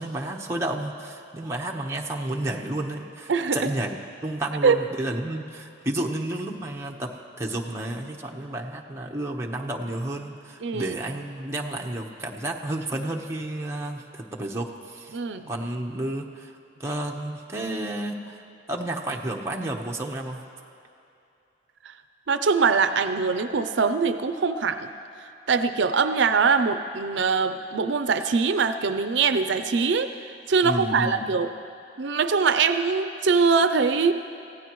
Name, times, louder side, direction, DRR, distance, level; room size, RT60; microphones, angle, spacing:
voice 1, 0.0-4.0 4.2-7.1 7.4-15.2 15.5-16.5 16.8-18.4 18.7-20.4 30.6-31.3, right 1 dB, 15° right, -1 dB, 1.0 m, -31 dB
voice 2, 3.3-3.7 4.6-4.8 10.6-11.0 15.1-15.5 21.8-21.9 22.3-24.9 25.5-31.5 32.0-34.1, right 5 dB, 75° right, 10 dB, 0.5 m, -23 dB
25.0 x 15.5 x 3.1 m, 2.7 s
head